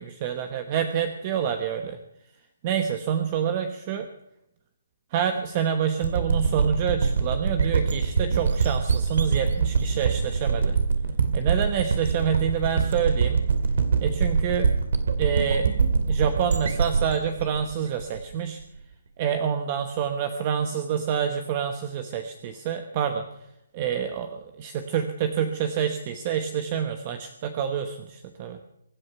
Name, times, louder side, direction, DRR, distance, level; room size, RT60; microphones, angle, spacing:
voice 1, 0.0-2.0 2.6-4.1 5.1-10.8 11.3-13.5 14.0-14.7 15.2-15.7 16.1-18.6 19.2-23.5 23.7-28.6, right 8 dB, 25° right, 7 dB, 1.1 m, -27 dB
sound 1, 6.0-18.6, right 5 dB, 60° right, 2.3 m, -24 dB
24.5 x 9.7 x 5.8 m, 0.83 s
hypercardioid pair, 170°, 0 cm